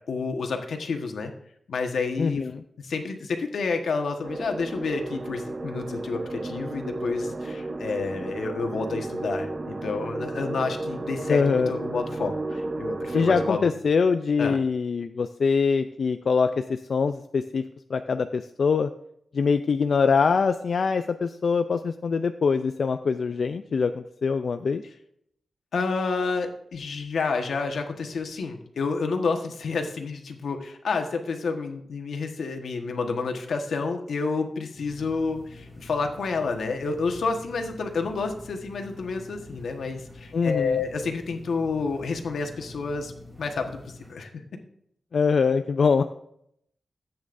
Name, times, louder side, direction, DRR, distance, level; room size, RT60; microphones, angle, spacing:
voice 1, 0.1-1.3 1.7-2.4 2.8-13.6 14.4-14.6 25.7-43.1 43.4-43.8 44.1-44.4, left 4 dB, 85° left, 4 dB, 1.3 m, -29 dB
voice 2, 2.2-2.6 11.3-11.7 13.1-17.6 17.9-18.9 19.3-24.8 40.3-40.8 45.1-46.0, left 5 dB, 60° left, 8 dB, 0.4 m, -23 dB
sound 1, 4.2-13.5, right 2 dB, 35° right, 0.6 m, -33 dB
sound 2, 34.8-44.1, left 2 dB, 10° right, 2.3 m, -46 dB
14.0 x 8.6 x 2.6 m, 0.72 s
wide cardioid pair, 135°, 0 cm